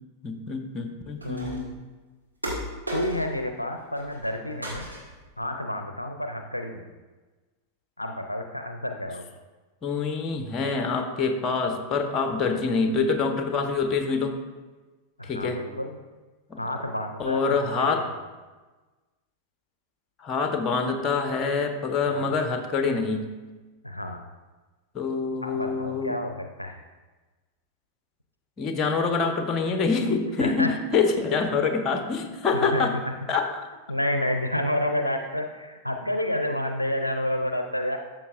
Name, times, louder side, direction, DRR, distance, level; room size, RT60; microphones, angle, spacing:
voice 1, 0.2-1.7 9.8-14.4 15.2-15.6 16.5-16.6 17.2-18.1 20.2-23.3 24.9-26.2 28.6-33.0 33.3-33.7, left 4 dB, 25° left, 6 dB, 0.9 m, -26 dB
voice 2, 1.2-1.7 2.9-4.9 5.4-6.9 8.0-9.2 15.2-16.0 16.6-18.1 22.1-22.3 23.8-24.2 25.4-26.8 30.4-30.7 32.5-33.0 33.9-38.0, left 1 dB, 85° left, 5 dB, 0.5 m, -30 dB
sound 1, 1.2-1.8 2.4-3.5 3.8-4.3 4.6-5.3, equal, 85° right, 2.1 m, -35 dB
12.5 x 7.4 x 2.5 m, 1.3 s
figure-of-eight pair, 90°, 0 cm